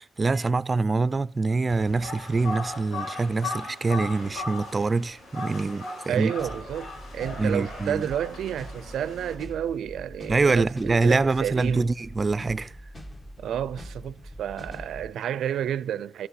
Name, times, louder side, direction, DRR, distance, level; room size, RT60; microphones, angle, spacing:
voice 1, 0.0-6.3 7.4-8.1 10.3-12.7, right 3 dB, 30° right, 0.4 m, -25 dB
sound 1, 1.7-9.3, left 2 dB, 80° left, 6.4 m, -38 dB
voice 2, 6.1-11.9 13.4-16.3, right 10 dB, 90° right, 0.4 m, -31 dB
sound 2, 6.4-15.1, equal, 25° left, 1.8 m, -43 dB
13.5 x 5.7 x 5.7 m
cardioid pair, 105°, 0 cm